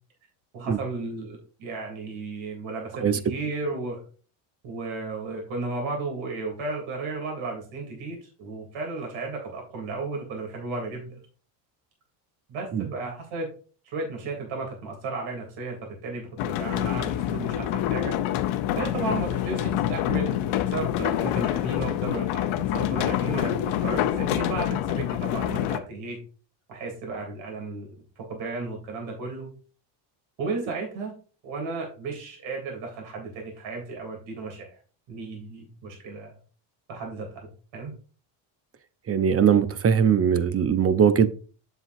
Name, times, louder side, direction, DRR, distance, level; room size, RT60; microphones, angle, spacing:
voice 1, 0.5-4.0 4.6-11.2 12.5-13.5 13.8-18.1 18.7-26.2 26.7-27.9 28.2-29.5 30.4-31.1 31.4-34.7 35.1-36.4 36.9-37.9, right 3 dB, 70° right, 3.2 m, -34 dB
sound 1, 16.4-25.8, left 12 dB, 70° left, 0.9 m, -26 dB
voice 2, 39.1-41.3, right 7 dB, 30° right, 0.8 m, -20 dB
7.8 x 7.4 x 2.7 m
supercardioid pair, 95°, 49 cm